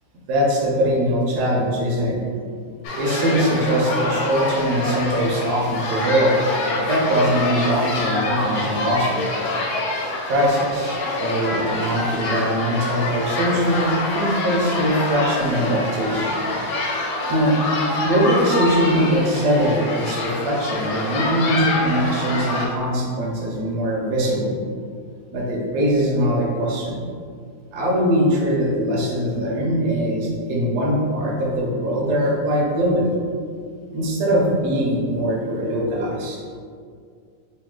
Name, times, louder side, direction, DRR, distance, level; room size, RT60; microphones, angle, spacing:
voice 1, 0.3-2.2 3.0-9.2 10.2-16.4 17.3-17.6 18.0-24.6 25.3-27.0 27.7-33.1 33.9-36.4, equal, 75° right, -3 dB, 1.3 m, -21 dB
sound 1, 2.8-22.7, left 2 dB, 75° left, 1.1 m, -26 dB
3.2 x 2.7 x 3.7 m, 2.2 s
omnidirectional pair, 1.7 m